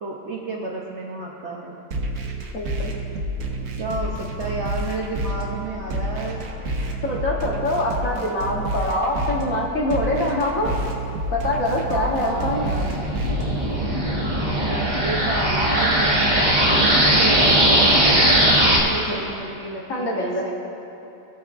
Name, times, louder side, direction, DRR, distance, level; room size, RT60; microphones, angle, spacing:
voice 1, 0.0-1.8 3.8-6.4 7.1-8.6 11.9-13.2 14.5-20.5, right 2 dB, 70° right, -2 dB, 0.6 m, -32 dB
sound 1, 1.9-13.9, right 1 dB, 55° right, 1.0 m, -29 dB
voice 2, 2.5-2.9 7.0-10.7 11.3-12.7 19.1-19.3 19.9-20.5, left 1 dB, 50° left, -2 dB, 1.2 m, -24 dB
sound 2, 11.6-18.8, right 1 dB, 25° right, 1.4 m, -19 dB
20.0 x 7.6 x 2.5 m, 3.0 s
omnidirectional pair, 2.2 m